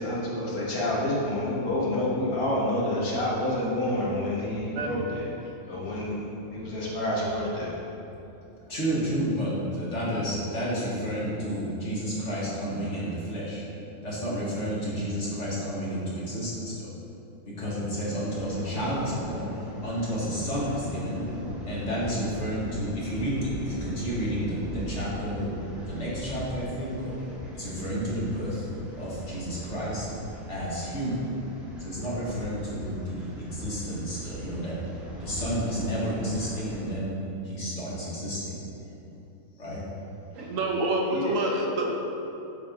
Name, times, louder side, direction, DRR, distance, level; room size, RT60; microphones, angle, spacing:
voice 1, 0.0-5.2 5.7-6.2 6.5-7.7 41.1-41.3, left 1 dB, 75° left, -6 dB, 1.9 m, -28 dB
voice 2, 4.7-5.0 5.4-5.6 40.3-41.9, right 2 dB, 65° right, 0 dB, 1.1 m, -27 dB
voice 3, 8.7-13.6 14.0-16.9 17.6-21.3 21.7-25.5 25.8-27.2 27.5-28.7 28.9-30.1 30.5-31.3 31.8-34.8 35.2-37.2 37.4-38.6 39.6-39.8, equal, 50° left, -7 dB, 2.0 m, -31 dB
sound 1, 18.2-36.9, equal, ahead, 1.1 m, -40 dB
7.6 x 5.2 x 3.8 m, 2.9 s
omnidirectional pair, 1.5 m